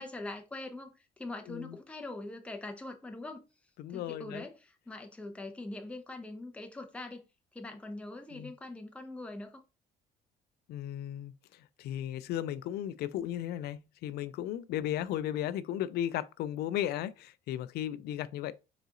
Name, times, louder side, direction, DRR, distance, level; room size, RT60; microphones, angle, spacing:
voice 1, 0.0-3.5 3.9-7.3 7.5-9.6, left 2 dB, 5° left, 0.6 m, -43 dB
voice 2, 3.8-4.4 8.3-8.5 10.7-11.3 11.8-18.5, left 11 dB, 70° left, 0.4 m, -35 dB
3.9 x 3.9 x 2.4 m
cardioid pair, 110°, 17 cm